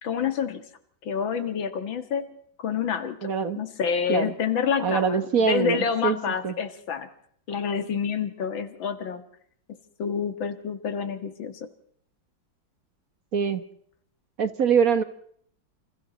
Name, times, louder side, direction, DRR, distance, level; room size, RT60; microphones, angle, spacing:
voice 1, 0.0-0.7 1.0-2.3 2.6-7.1 7.5-9.2 10.0-11.7, left 6 dB, 85° left, 10 dB, 2.5 m, -28 dB
voice 2, 3.2-3.6 4.1-4.3 4.8-6.2 6.4-6.5 13.3-13.6 14.4-15.0, right 6 dB, 50° right, 11 dB, 1.6 m, -23 dB
28.5 x 27.0 x 4.1 m, 0.64 s
omnidirectional pair, 2.1 m